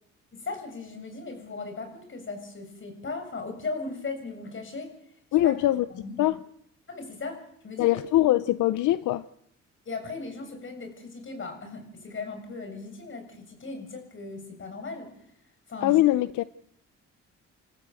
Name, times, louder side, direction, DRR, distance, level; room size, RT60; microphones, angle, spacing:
voice 1, 0.3-4.9 5.4-5.5 5.9-6.2 6.9-7.4 7.6-8.0 9.9-15.1 15.7-16.0, left 3 dB, 40° left, 6 dB, 7.6 m, -37 dB
voice 2, 5.3-5.9 6.2-6.4 7.8-9.2 15.8-16.4, left 15 dB, 80° left, 14 dB, 0.8 m, -22 dB
29.0 x 14.5 x 7.9 m, 0.71 s
cardioid pair, 90°, 30 cm